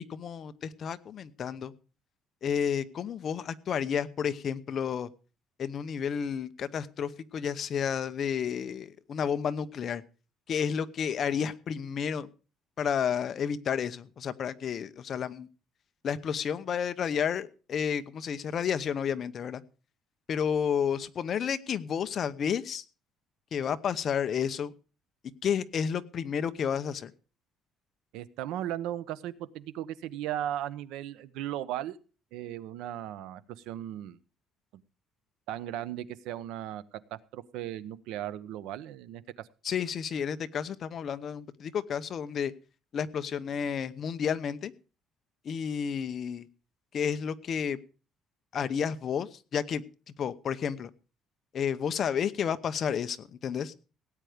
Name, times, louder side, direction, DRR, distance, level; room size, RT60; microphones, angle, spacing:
voice 1, 0.0-1.7 2.4-5.1 5.6-10.0 10.5-12.3 12.8-15.5 16.0-19.6 20.3-22.8 23.5-24.7 25.4-27.1 39.6-42.5 42.9-44.7 45.4-46.5 46.9-47.8 48.5-49.8 50.2-50.9 51.5-53.7, left 7 dB, 40° left, 11 dB, 0.9 m, -31 dB
voice 2, 28.1-32.0 32.3-34.2 35.5-39.5, right 12 dB, 85° right, 16 dB, 0.9 m, -37 dB
17.5 x 9.2 x 5.0 m, 0.36 s
cardioid pair, 155°, 0 cm